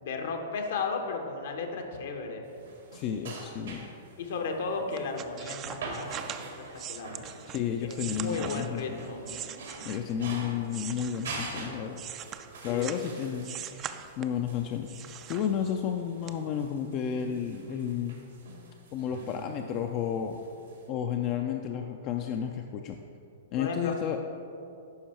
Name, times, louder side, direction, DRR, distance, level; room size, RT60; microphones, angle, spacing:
voice 1, 0.0-2.5 4.2-6.1 6.9-7.3 7.8-9.2 12.7-12.9 23.6-23.9, left 4 dB, 70° left, 3 dB, 1.1 m, -34 dB
sound 1, 2.4-20.9, right 3 dB, 75° right, 1.7 m, -45 dB
voice 2, 2.9-3.9 7.5-9.0 9.8-12.0 12.6-13.6 14.2-18.2 18.9-20.4 20.9-23.0 23.5-24.2, left 8 dB, 40° left, 4 dB, 0.4 m, -32 dB
sound 2, 5.0-10.2 10.7-13.1 13.4-14.5 14.9-15.9 16.3-16.4, right 10 dB, 30° right, 0.4 m, -41 dB
11.0 x 4.6 x 4.4 m, 2.7 s
hypercardioid pair, 115°, 0 cm